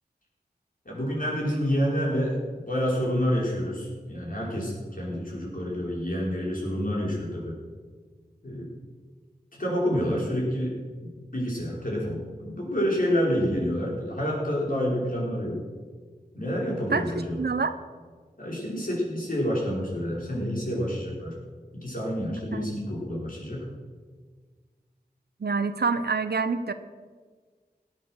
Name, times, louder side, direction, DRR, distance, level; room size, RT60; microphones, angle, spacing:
voice 1, 0.8-7.6 8.4-8.7 9.6-15.6 16.3-17.4 18.4-21.3 21.7-23.7, equal, 60° left, -4 dB, 5.1 m, -28 dB
voice 2, 17.4-17.8 22.5-22.6 25.4-26.7, right 4 dB, 90° right, 11 dB, 0.9 m, -26 dB
17.5 x 9.8 x 6.5 m, 1.5 s
wide cardioid pair, 60°, 16 cm